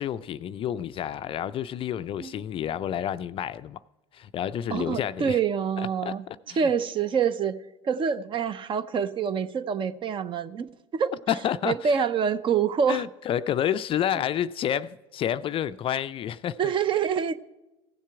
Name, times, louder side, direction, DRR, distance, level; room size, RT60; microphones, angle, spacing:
voice 1, 0.0-3.8 4.1-5.4 5.8-6.7 11.3-12.0 12.9-16.6, left 10 dB, 35° left, 0.4 m, -29 dB
voice 2, 4.7-6.2 6.6-7.6 7.8-11.1 11.6-13.0 16.6-17.4, right 7 dB, 35° right, 0.6 m, -26 dB
16.0 x 7.3 x 4.7 m
hypercardioid pair, 70°, 15 cm